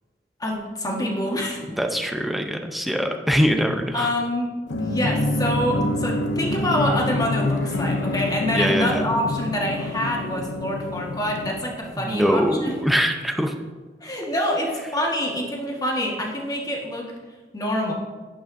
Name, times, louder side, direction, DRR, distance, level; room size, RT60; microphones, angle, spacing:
voice 1, 0.4-1.6 3.9-4.5 4.8-12.7 14.0-17.1 17.5-17.9, equal, 20° left, -1 dB, 1.5 m, -26 dB
voice 2, 1.7-4.1 8.5-9.0 11.9-13.5, equal, ahead, 4 dB, 0.6 m, -23 dB
sound 1, 4.7-12.2, left 2 dB, 85° left, 0.6 m, -27 dB
11.0 x 8.7 x 2.6 m, 1.4 s
head